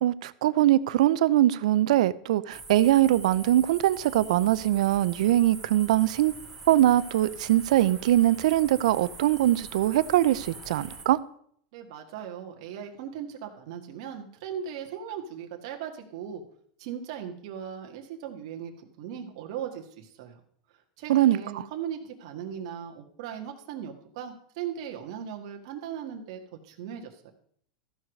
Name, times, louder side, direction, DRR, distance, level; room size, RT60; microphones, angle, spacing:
voice 1, 0.0-6.3 6.7-11.2 21.1-21.4, right 13 dB, 75° right, 0.5 m, -22 dB
sound 1, 2.5-11.0, right 3 dB, 5° right, 2.3 m, -44 dB
voice 2, 11.7-16.4 16.8-18.7 19.0-20.4 21.0-27.3, right 8 dB, 55° right, 1.7 m, -38 dB
14.0 x 4.8 x 6.3 m
supercardioid pair, 170°, 4 cm